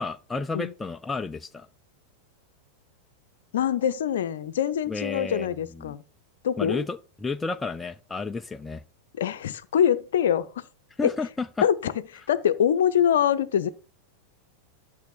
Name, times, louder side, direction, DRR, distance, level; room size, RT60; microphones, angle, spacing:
voice 1, 0.0-1.7 4.9-5.9 6.6-8.8 11.0-11.7, left 4 dB, 10° left, 0.4 m, -32 dB
voice 2, 3.5-6.0 6.4-6.9 9.2-10.5 11.0-11.1 11.6-11.9 12.3-13.7, left 9 dB, 60° left, 0.7 m, -24 dB
11.5 x 6.3 x 4.4 m
figure-of-eight pair, 90°, 0 cm